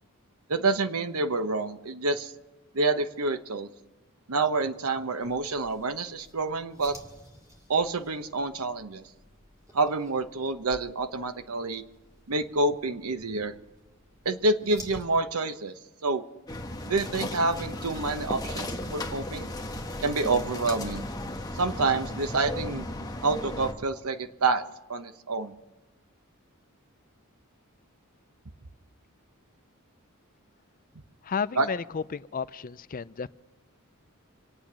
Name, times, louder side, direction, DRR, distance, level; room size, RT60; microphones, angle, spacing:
voice 1, 0.5-2.3 2.7-3.7 4.3-7.0 7.7-9.1 9.7-11.8 12.3-13.5 14.2-15.7 16.0-16.2 16.8-19.5 20.0-21.1 21.5-22.9 23.2-24.6 24.9-25.5 31.6-31.7, right 3 dB, 85° right, 9 dB, 1.0 m, -28 dB
sound 1, 5.2-15.1, equal, 15° right, 2.6 m, -52 dB
sound 2, 16.5-23.7, left 1 dB, 15° left, 1.2 m, -35 dB
voice 2, 31.2-33.3, left 6 dB, 40° left, 15 dB, 0.4 m, -32 dB
26.5 x 8.8 x 6.2 m, 1.1 s
head